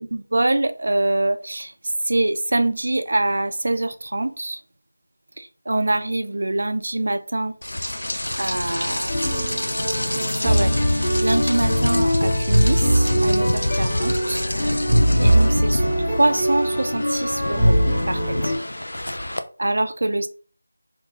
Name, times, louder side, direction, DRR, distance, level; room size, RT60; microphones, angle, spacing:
voice 1, 0.0-1.7 2.1-4.6 5.4-7.5 8.4-9.5 10.1-14.5 15.2-15.8 16.2-17.8 18.1-18.5 19.6-20.3, right 2 dB, 55° right, 0.6 m, -24 dB
Rain, 7.6-19.4, left 1 dB, 75° left, 0.6 m, -26 dB
sound 1, 9.1-18.6, equal, 20° left, 2.1 m, -21 dB
3.7 x 2.9 x 3.9 m
figure-of-eight pair, 170°, 0 cm